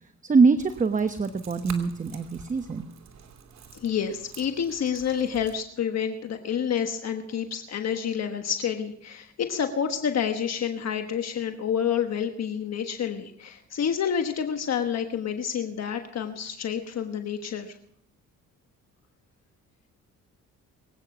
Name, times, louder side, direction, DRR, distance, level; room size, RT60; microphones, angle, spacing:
voice 1, 0.2-2.9, right 4 dB, 25° right, 9 dB, 0.9 m, -23 dB
sound 1, 0.6-5.6, right 7 dB, 65° right, 2.8 m, -48 dB
voice 2, 3.7-17.7, left 8 dB, 60° left, 6 dB, 1.3 m, -29 dB
23.0 x 9.0 x 6.0 m, 0.71 s
cardioid pair, 90°, 30 cm